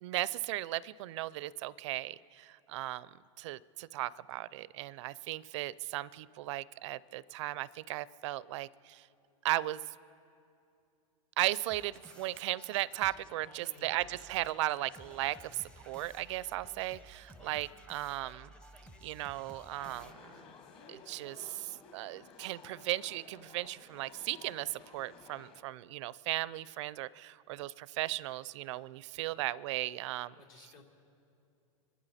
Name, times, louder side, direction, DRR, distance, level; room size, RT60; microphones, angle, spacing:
voice 1, 0.0-3.1 3.4-9.1 9.4-9.9 11.4-18.5 19.0-20.4 20.9-30.3, right 16 dB, 60° right, 20 dB, 0.4 m, -36 dB
sound 1, 11.7-20.1, right 1 dB, 5° left, 0.6 m, -55 dB
voice 2, 13.4-14.1 17.3-17.6 30.4-30.8, left 3 dB, 75° left, 0 dB, 3.1 m, -58 dB
sound 2, 19.8-25.6, left 5 dB, 30° left, 1.2 m, -55 dB
26.0 x 12.0 x 4.2 m, 2.6 s
supercardioid pair, 135°, 18 cm